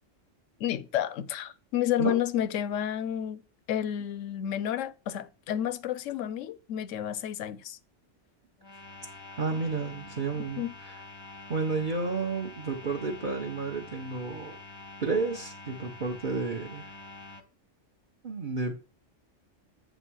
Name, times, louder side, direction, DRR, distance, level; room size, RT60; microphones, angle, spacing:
voice 1, 0.6-3.4 3.7-7.8 10.6-10.7, left 11 dB, 80° left, 0.9 m, -31 dB
sound 1, 8.6-17.4, left 2 dB, 25° left, 0.7 m, -46 dB
voice 2, 9.4-10.9 11.5-14.6 15.0-16.9 18.2-18.8, right 4 dB, 45° right, 1.1 m, -31 dB
8.2 x 3.4 x 6.2 m
omnidirectional pair, 1.3 m